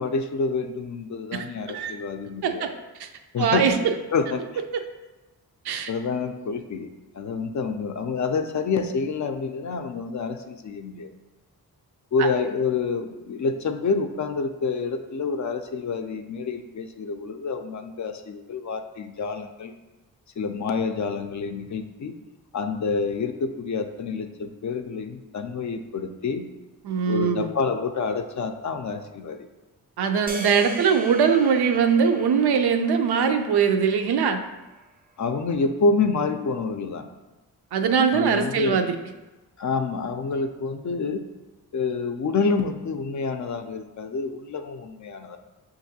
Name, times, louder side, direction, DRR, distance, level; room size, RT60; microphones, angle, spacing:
voice 1, 0.0-2.8 3.3-3.7 4.1-4.4 5.9-11.1 12.1-19.8 20.4-22.1 22.5-26.4 27.1-29.5 35.2-37.1 38.1-38.9 39.6-41.2 41.7-45.4, left 4 dB, 50° left, 7 dB, 0.4 m, -28 dB
voice 2, 1.3-2.0 2.4-2.7 3.0-3.1 3.4-3.7 5.7-5.9 12.2-12.3 26.8-27.5 30.0-34.4 37.7-38.9, right 6 dB, 80° right, 6 dB, 0.5 m, -22 dB
sound 1, 30.3-34.6, right 3 dB, 25° right, 0.5 m, -40 dB
5.7 x 2.6 x 2.7 m, 1.1 s
cardioid pair, 55°, 39 cm